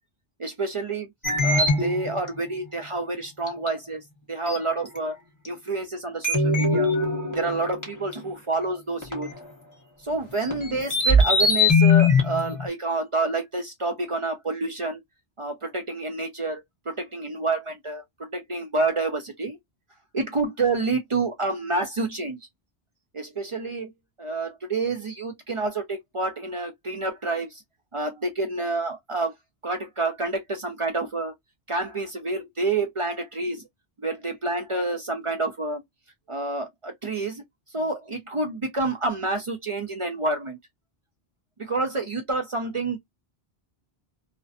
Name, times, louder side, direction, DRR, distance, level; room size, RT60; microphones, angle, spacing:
voice 1, 0.4-1.1 1.4-5.2 5.5-6.9 7.3-9.3 10.0-15.0 15.4-19.6 20.1-22.4 23.1-23.9 24.2-27.6 27.9-29.3 29.6-31.3 31.7-33.7 34.0-35.8 36.3-37.4 37.7-40.6 41.6-43.0, right 3 dB, 40° right, 0.5 m, -28 dB
sound 1, 1.2-2.3 3.5-3.7 4.5-4.6 4.9-5.0 5.5-5.6 6.2-8.1 9.0-9.5 10.4-12.7, left 2 dB, 20° left, 1.0 m, -21 dB
2.5 x 2.2 x 2.4 m
omnidirectional pair, 1.1 m